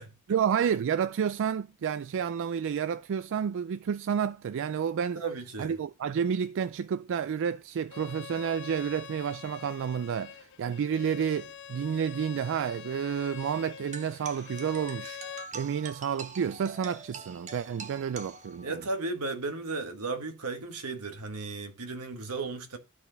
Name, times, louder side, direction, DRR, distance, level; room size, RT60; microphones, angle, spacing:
voice 1, 0.3-5.2 5.6-15.2 15.5-18.8, right 7 dB, 60° right, 0.3 m, -30 dB
voice 2, 5.1-5.8 18.6-22.8, right 3 dB, 80° right, 1.4 m, -35 dB
Bowed string instrument, 7.9-15.5, left 9 dB, 55° left, 0.7 m, -45 dB
sound 1, 13.9-18.9, right 4 dB, 35° right, 1.0 m, -44 dB
13.0 x 4.3 x 3.9 m
head